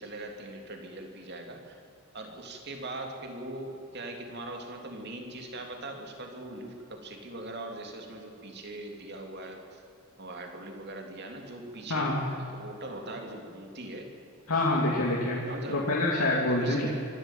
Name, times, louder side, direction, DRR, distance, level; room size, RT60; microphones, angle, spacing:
voice 1, 0.0-1.8 2.1-9.8 10.2-12.1 12.4-14.1 15.5-15.8 16.5-16.9, right 2 dB, 50° right, 3 dB, 3.1 m, -41 dB
voice 2, 11.9-12.2 14.5-15.4 15.7-16.9, left 2 dB, 75° left, -4 dB, 2.9 m, -26 dB
25.0 x 13.0 x 9.2 m, 2.5 s
head